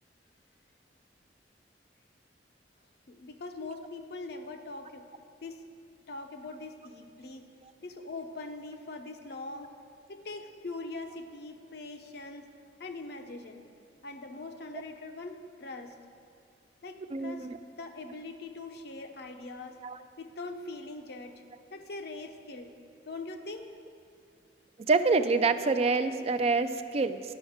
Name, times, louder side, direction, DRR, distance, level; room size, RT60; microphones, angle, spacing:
voice 1, 3.1-5.1 5.4-5.6 6.1-7.5 7.8-9.7 10.1-12.5 12.8-13.6 14.0-15.9 16.8-19.8 20.2-21.4 21.7-22.7 23.1-23.7, left 3 dB, 60° left, 6 dB, 0.7 m, -42 dB
voice 2, 17.1-17.6 19.8-20.0 24.9-27.2, right 4 dB, 35° right, 10 dB, 0.4 m, -26 dB
10.5 x 6.3 x 7.1 m, 2.3 s
head